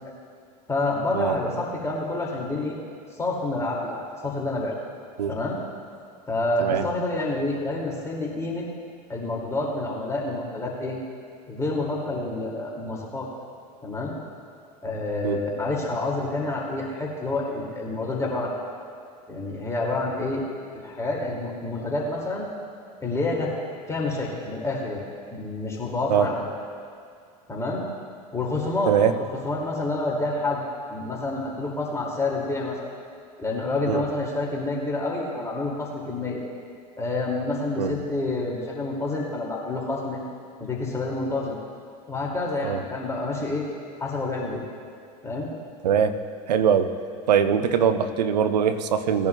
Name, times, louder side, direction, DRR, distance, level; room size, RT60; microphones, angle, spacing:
voice 1, 0.7-2.8 3.2-4.8 5.3-5.6 6.3-8.6 9.1-11.0 11.5-13.3 13.8-14.1 14.8-18.5 19.3-20.4 20.7-22.5 23.0-23.5 23.9-26.5 27.5-27.8 28.3-28.9 29.4-30.6 30.9-32.9 33.4-36.4 37.0-40.2 40.6-41.6 42.1-43.7 44.0-44.6 45.2-45.5, left 2 dB, 15° left, -4 dB, 2.3 m, -28 dB
voice 2, 28.9-29.2 33.9-34.0 37.8-37.9 42.6-42.8 45.8-46.2 46.5-46.9 47.3-49.3, right 7 dB, 80° right, 10 dB, 0.7 m, -22 dB
19.0 x 10.5 x 2.3 m, 2.3 s
hypercardioid pair, 85°, 21 cm